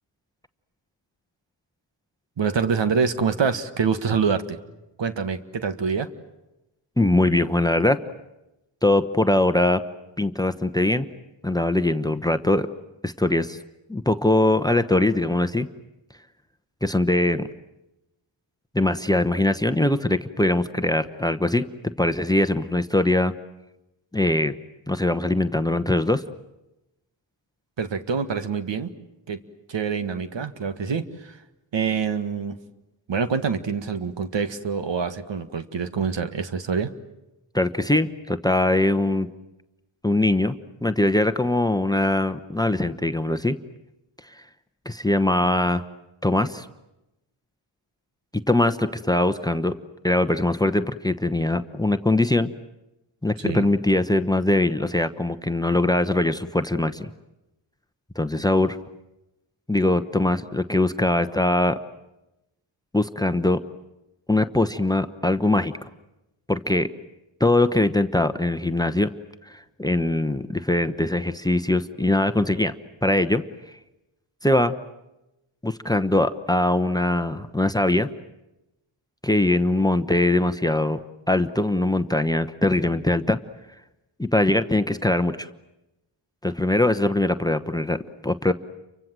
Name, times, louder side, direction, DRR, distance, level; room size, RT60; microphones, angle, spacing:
voice 1, 2.4-4.6 5.0-6.1 27.8-28.9 29.3-29.4 29.7-31.4 31.7-32.6 33.1-36.9 53.4-53.7, right 5 dB, 65° right, 10 dB, 1.8 m, -26 dB
voice 2, 7.0-8.0 8.8-9.8 10.2-11.1 11.4-12.7 13.0-13.6 13.9-15.7 16.8-17.5 18.7-23.3 24.1-24.5 24.9-26.2 37.5-39.3 40.0-40.5 40.8-43.6 44.8-45.8 46.2-46.7 48.3-49.8 50.0-52.5 53.2-57.1 58.2-58.8 59.7-61.8 62.9-63.6 64.3-65.7 66.5-66.9 67.4-69.1 69.5-72.7 73.0-73.4 74.4-74.7 75.6-78.1 79.2-83.4 84.2-85.5 86.4-88.5, left 1 dB, 10° left, 12 dB, 1.0 m, -22 dB
30.0 x 24.5 x 7.6 m, 0.94 s
cardioid pair, 75°, 47 cm